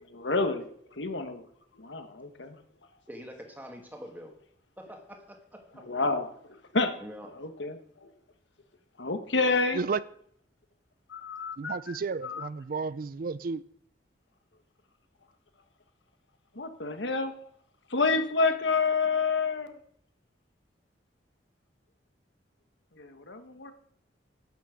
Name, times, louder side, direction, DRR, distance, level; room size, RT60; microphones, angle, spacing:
voice 1, 0.1-0.7 1.0-1.4 1.8-2.6 5.9-6.3 6.7-6.9 7.4-8.1 9.0-9.8 11.1-11.8 12.2-12.5 16.5-17.3 17.9-19.8 23.0-23.7, left 4 dB, 75° left, 1.4 m, -28 dB
voice 2, 3.1-4.3 4.8-5.4 7.0-7.3, equal, 10° right, 1.9 m, -44 dB
voice 3, 11.6-13.6, right 4 dB, 50° right, 0.4 m, -32 dB
11.5 x 6.2 x 8.2 m
head